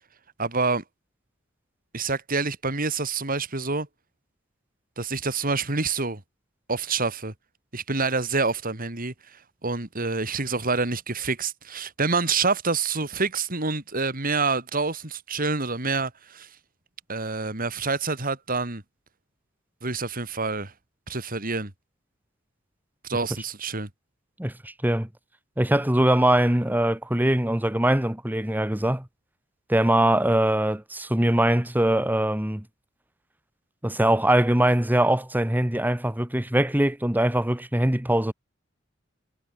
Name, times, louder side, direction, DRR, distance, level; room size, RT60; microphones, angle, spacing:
voice 1, 0.4-0.8 1.9-3.9 5.0-6.2 6.7-7.3 7.7-16.5 17.1-18.8 19.8-20.7 21.1-21.7 23.1-23.9, right 4 dB, 45° right, 3.3 m, -27 dB
voice 2, 24.4-25.1 25.6-29.1 29.7-32.6 33.8-38.3, right 1 dB, 10° right, 1.3 m, -22 dB
head